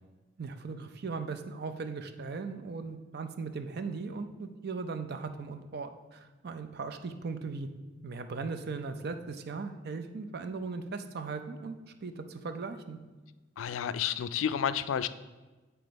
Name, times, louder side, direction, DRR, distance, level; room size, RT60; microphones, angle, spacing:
voice 1, 0.4-7.7 8.0-11.8 12.0-13.0, right 4 dB, 55° right, 8 dB, 0.5 m, -38 dB
voice 2, 13.6-15.1, left 8 dB, 85° left, 14 dB, 0.3 m, -30 dB
8.5 x 3.4 x 5.1 m, 1.2 s
head